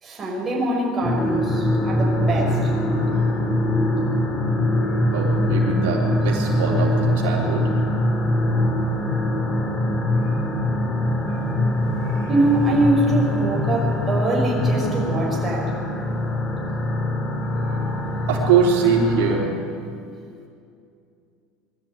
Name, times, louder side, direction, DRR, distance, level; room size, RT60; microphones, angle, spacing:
voice 1, 0.0-2.7 12.3-15.7, right 1 dB, 20° right, -2 dB, 6.0 m, -23 dB
sound 1, 1.0-19.4, left 1 dB, 25° left, 3.2 m, -23 dB
voice 2, 3.0-3.4 5.1-7.6 10.2-10.4 11.3-11.4 12.0-12.3 17.4-19.4, right 6 dB, 80° right, -2 dB, 3.7 m, -24 dB
22.0 x 13.5 x 9.3 m, 2.5 s
supercardioid pair, 125°, 0 cm